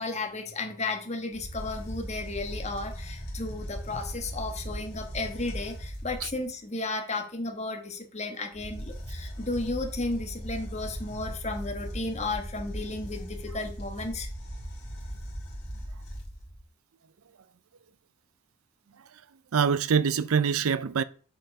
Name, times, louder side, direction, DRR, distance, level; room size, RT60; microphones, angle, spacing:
voice 1, 0.0-14.3, left 2 dB, 30° left, 1.4 m, -34 dB
sound 1, 1.3-6.5 8.5-16.6, equal, 50° left, 2.5 m, -38 dB
voice 2, 19.5-21.0, right 6 dB, 80° right, 0.5 m, -24 dB
7.6 x 4.6 x 5.2 m
head